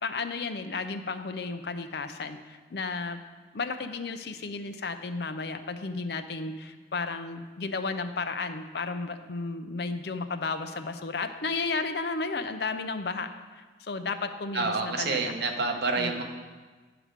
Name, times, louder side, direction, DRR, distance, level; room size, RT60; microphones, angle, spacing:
voice 1, 0.0-3.2 3.5-15.4 16.0-16.2, left 4 dB, 60° left, 8 dB, 0.5 m, -33 dB
voice 2, 14.5-16.2, right 3 dB, 65° right, 3 dB, 0.9 m, -28 dB
9.9 x 4.9 x 5.1 m, 1.3 s
head